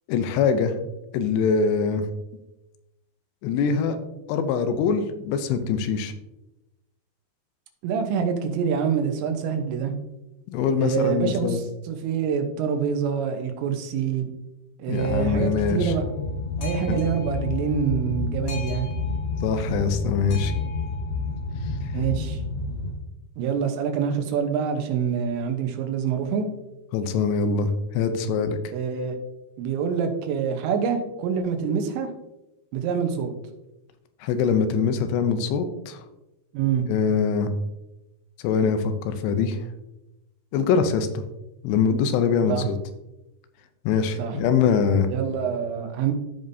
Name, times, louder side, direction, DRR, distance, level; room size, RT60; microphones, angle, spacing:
voice 1, 0.1-0.8 1.1-2.1 3.4-4.0 4.3-6.1 10.5-11.6 14.9-15.9 16.9-17.0 19.4-20.5 26.9-28.6 34.2-36.0 36.9-37.5 38.4-39.6 40.5-41.2 41.6-42.8 43.9-45.1, left 6 dB, 80° left, 9 dB, 2.8 m, -23 dB
voice 2, 7.8-9.9 10.8-14.3 14.8-16.0 16.6-18.9 21.9-22.4 23.4-26.4 28.7-29.2 29.6-32.1 32.7-33.3 36.5-36.9 42.5-42.7 44.2-44.4 45.1-46.1, right 7 dB, 90° right, 5 dB, 3.3 m, -26 dB
Boat Water vehicle, 15.0-22.9, left 3 dB, 55° left, 1.8 m, -29 dB
14.5 x 5.2 x 2.7 m, 0.96 s
omnidirectional pair, 5.0 m